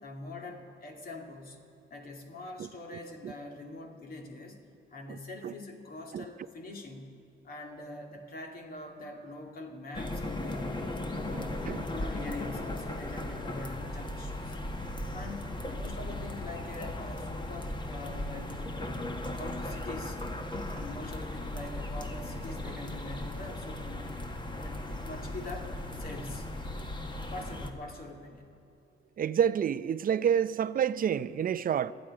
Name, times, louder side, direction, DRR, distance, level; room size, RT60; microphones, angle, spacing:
voice 1, 0.0-1.6 1.9-4.6 4.9-14.6 15.1-15.5 15.8-20.2 20.7-26.5 27.3-28.5, left 2 dB, 50° left, 2.6 m, -44 dB
sound 1, 9.9-27.7, left 1 dB, 25° left, 1.4 m, -37 dB
voice 2, 11.3-11.8 29.2-31.9, right 8 dB, 45° right, 0.6 m, -28 dB
27.5 x 9.2 x 5.1 m
cardioid pair, 90°, 20 cm